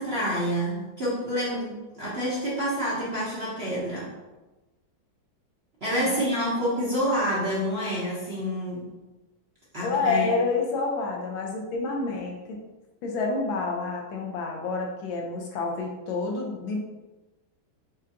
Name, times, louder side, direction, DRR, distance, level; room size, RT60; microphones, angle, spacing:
voice 1, 0.0-4.1 5.8-8.9 9.7-10.3, equal, 40° right, -8 dB, 0.9 m, -28 dB
voice 2, 6.0-6.6 9.8-12.6 13.0-16.8, left 3 dB, 75° left, 0 dB, 1.5 m, -29 dB
4.8 x 3.6 x 2.8 m, 1.1 s
omnidirectional pair, 2.2 m